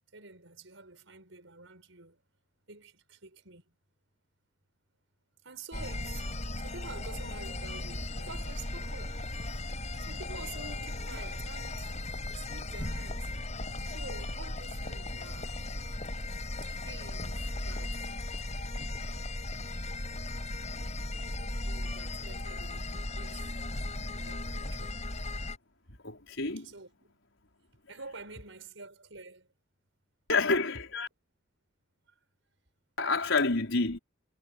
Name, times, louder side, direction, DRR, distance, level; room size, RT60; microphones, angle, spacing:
voice 1, 0.1-2.2 2.7-3.6 5.4-6.3 6.6-9.2 10.0-12.0 12.3-13.3 13.8-15.7 16.6-18.2 21.2-23.5 24.1-25.0 26.6-27.1 27.9-29.5, right 3 dB, 75° right, 6.5 m, -48 dB
sound 1, 5.7-25.6, left 2 dB, 40° left, 5.8 m, -37 dB
voice 2, 26.0-26.7 30.3-31.1 33.0-34.0, left 3 dB, 80° left, 4.8 m, -28 dB
head